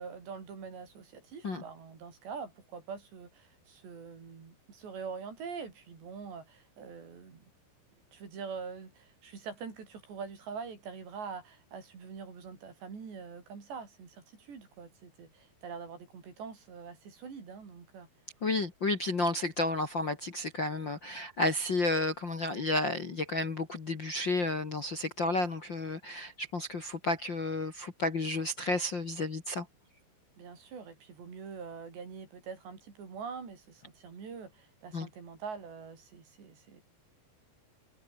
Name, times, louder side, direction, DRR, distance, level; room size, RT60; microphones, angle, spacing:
voice 1, 0.0-7.5 8.1-18.1 30.4-36.8, right 5 dB, 75° right, 7.8 m, -44 dB
voice 2, 18.4-29.7 34.9-35.1, left 2 dB, 35° left, 2.0 m, -32 dB
omnidirectional pair, 5.0 m